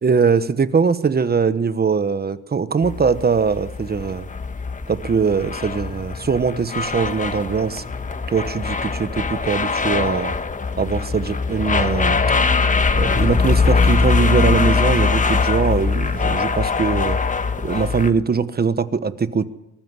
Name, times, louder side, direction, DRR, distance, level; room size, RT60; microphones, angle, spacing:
voice 1, 0.0-4.3 4.9-7.8 8.3-10.3 10.8-12.2 12.9-17.2 17.6-19.5, right 5 dB, 30° right, 13 dB, 1.2 m, -21 dB
sound 1, 2.8-18.1, left 4 dB, 25° left, 1.3 m, -21 dB
23.0 x 13.0 x 9.7 m, 0.94 s
cardioid pair, 90°, 30 cm